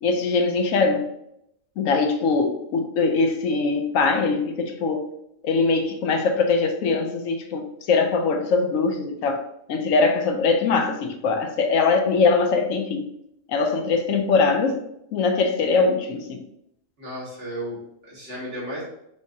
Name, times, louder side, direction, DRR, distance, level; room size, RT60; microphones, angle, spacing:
voice 1, 0.0-1.1 1.8-5.1 5.4-9.4 9.7-13.0 13.5-14.8 15.1-16.4, left 4 dB, 80° left, 6 dB, 1.0 m, -22 dB
voice 2, 17.0-18.8, equal, 60° right, -6 dB, 2.1 m, -34 dB
5.2 x 3.6 x 2.7 m, 0.78 s
omnidirectional pair, 1.4 m